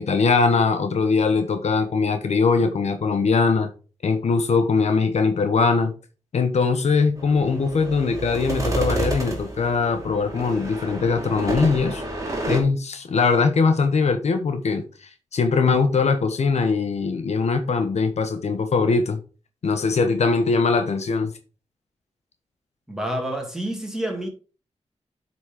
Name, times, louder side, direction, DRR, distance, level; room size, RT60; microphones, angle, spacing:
voice 1, 0.0-3.7 4.0-5.9 6.3-12.0 12.5-19.2 19.6-21.3, left 4 dB, 70° left, 1.1 m, -21 dB
sound 1, 7.2-12.6, right 2 dB, 25° right, 2.4 m, -29 dB
voice 2, 22.9-24.3, right 1 dB, 5° right, 2.3 m, -28 dB
7.9 x 4.2 x 5.0 m
wide cardioid pair, 110°, 12 cm